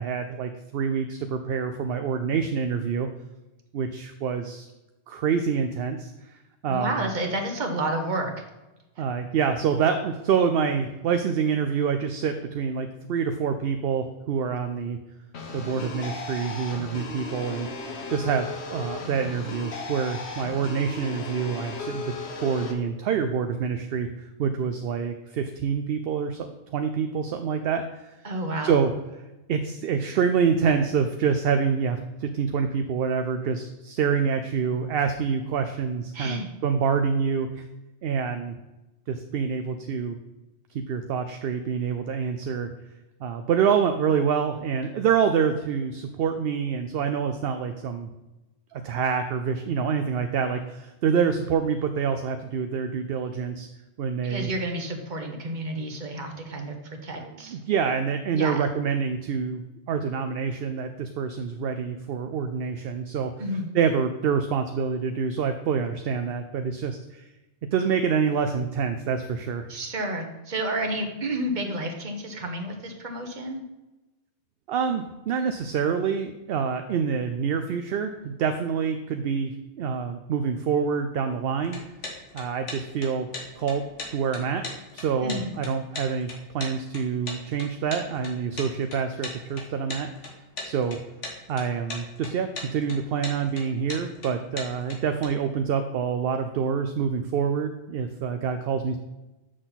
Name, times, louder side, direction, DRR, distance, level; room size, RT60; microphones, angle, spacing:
voice 1, 0.0-3.1 3.7-4.7 5.1-6.3 6.6-7.1 9.0-15.0 15.5-17.7 18.1-22.1 22.4-26.5 26.7-28.1 28.6-28.9 29.5-37.7 38.0-38.5 39.1-40.2 40.9-42.7 43.2-48.1 48.7-53.7 54.0-54.5 57.1-59.6 59.9-63.3 63.7-67.2 67.7-69.7 74.7-81.8 82.3-83.3 83.6-84.7 84.9-86.3 86.5-90.1 90.6-91.0 91.5-99.0, right 6 dB, 65° right, 7 dB, 0.7 m, -26 dB
voice 2, 6.7-8.3 28.2-28.9 36.1-36.5 54.2-57.6 58.3-58.7 63.4-63.7 69.7-73.6 85.2-85.5, right 1 dB, 40° right, 4 dB, 1.2 m, -30 dB
sound 1, 15.3-22.7, left 4 dB, 70° left, 1.4 m, -36 dB
sound 2, 81.6-95.2, left 2 dB, 85° left, 1.9 m, -38 dB
7.7 x 6.2 x 4.1 m, 1.0 s
omnidirectional pair, 1.2 m